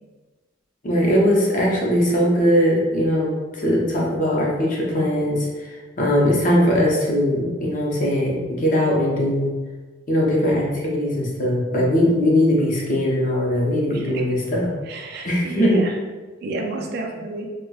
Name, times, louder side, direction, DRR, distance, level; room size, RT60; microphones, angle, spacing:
voice 1, 0.8-5.7 6.0-9.5 10.1-14.7 15.2-15.8, equal, 40° left, -4 dB, 0.7 m, -20 dB
voice 2, 14.9-15.9 16.4-17.5, right 2 dB, 55° right, 2 dB, 0.4 m, -31 dB
4.2 x 2.1 x 2.3 m, 1.3 s
head